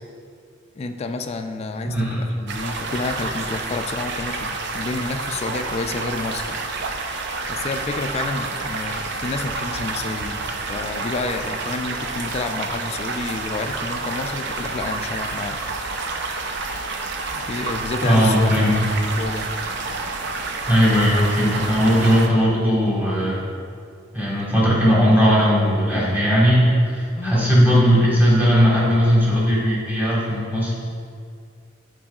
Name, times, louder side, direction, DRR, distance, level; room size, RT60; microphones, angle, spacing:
voice 1, 0.8-15.6 17.3-18.5 18.8-19.5 27.2-27.5, left 3 dB, 30° left, 5 dB, 0.3 m, -30 dB
voice 2, 1.8-2.2 18.0-18.7 20.7-23.4 24.1-30.7, equal, 10° right, -7 dB, 1.5 m, -18 dB
sound 1, 2.5-22.3, right 3 dB, 60° right, 0.5 m, -29 dB
10.0 x 4.5 x 2.3 m, 2.2 s
head